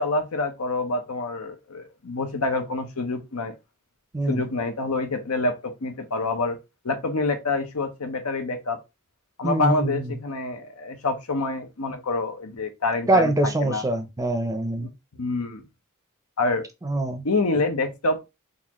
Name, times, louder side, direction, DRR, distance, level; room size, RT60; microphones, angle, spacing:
voice 1, 0.0-3.5 4.3-6.6 6.8-8.8 9.4-13.8 14.8-14.9 15.2-15.6 16.4-16.6 17.2-18.3, left 3 dB, 85° left, 0.8 m, -27 dB
voice 2, 9.4-10.1 13.1-14.9 16.8-17.3, right 2 dB, 15° right, 0.5 m, -24 dB
4.0 x 2.5 x 3.0 m
head